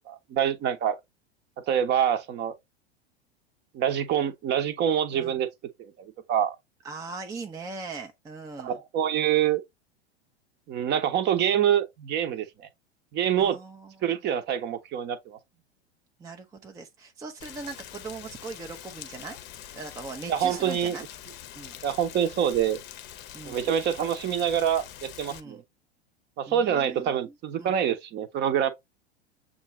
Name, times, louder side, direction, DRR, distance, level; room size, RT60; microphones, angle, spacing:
voice 1, 0.1-1.0 1.7-2.6 3.7-5.5 5.8-6.6 8.6-9.6 10.7-12.7 13.1-13.6 14.0-15.4 20.3-21.1 21.8-22.8 23.5-25.6 26.4-28.7, right 9 dB, 30° right, 0.8 m, -26 dB
voice 2, 6.8-8.8 13.4-14.1 16.2-19.4 19.7-21.0 21.6-21.8 23.3-23.7 25.3-25.6 26.5-27.3 27.6-27.7, right 4 dB, 10° right, 0.5 m, -40 dB
Rain, 17.4-25.4, left 11 dB, 35° left, 0.7 m, -44 dB
7.0 x 2.5 x 3.0 m
figure-of-eight pair, 90°, 32 cm